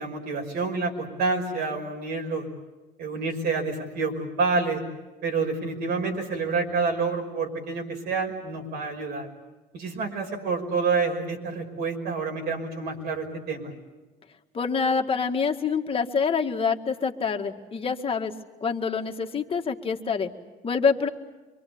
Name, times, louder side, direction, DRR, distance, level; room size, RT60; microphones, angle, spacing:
voice 1, 0.0-2.5 3.0-4.8 5.2-9.3 9.7-13.7, right 4 dB, 75° right, 2 dB, 5.8 m, -28 dB
voice 2, 14.5-18.3 18.6-20.3 20.6-21.1, left 5 dB, 35° left, 4 dB, 2.0 m, -26 dB
26.0 x 24.0 x 8.6 m, 1.2 s
cardioid pair, 110°, 17 cm